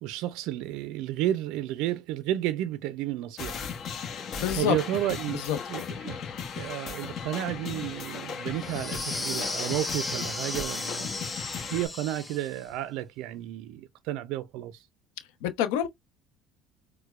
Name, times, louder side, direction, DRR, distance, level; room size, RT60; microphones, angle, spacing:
voice 1, 0.0-3.6 4.5-6.2 6.5-11.1 11.7-14.9, right 13 dB, 75° right, 0.3 m, -32 dB
sound 1, 3.4-11.9, left 6 dB, 50° left, 0.8 m, -37 dB
voice 2, 4.4-4.8 5.3-5.9 15.4-15.9, left 10 dB, 85° left, 0.6 m, -28 dB
sound 2, 8.6-12.6, left 2 dB, 15° left, 0.7 m, -35 dB
4.4 x 2.0 x 2.3 m
supercardioid pair, 95°, 0 cm